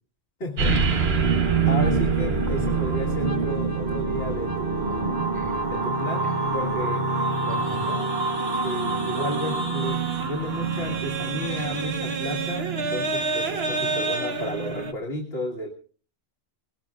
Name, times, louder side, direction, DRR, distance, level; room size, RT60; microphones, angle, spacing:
voice 1, 0.4-1.2 1.6-5.3 5.6-7.1 8.6-15.7, left 1 dB, 65° left, -1 dB, 2.1 m, -33 dB
sound 1, 0.6-14.9, right 4 dB, 65° right, 1.4 m, -27 dB
Wind instrument woodwind instrument, 1.0-9.6, right 4 dB, 15° left, 1.3 m, -34 dB
sound 2, 2.5-11.9, right 2 dB, 45° right, 1.0 m, -32 dB
voice 2, 4.9-5.8 6.2-6.3 6.9-7.0 7.4-8.1, left 3 dB, 45° left, 3 dB, 4.9 m, -39 dB
21.0 x 19.0 x 2.4 m, 0.41 s
omnidirectional pair, 1.1 m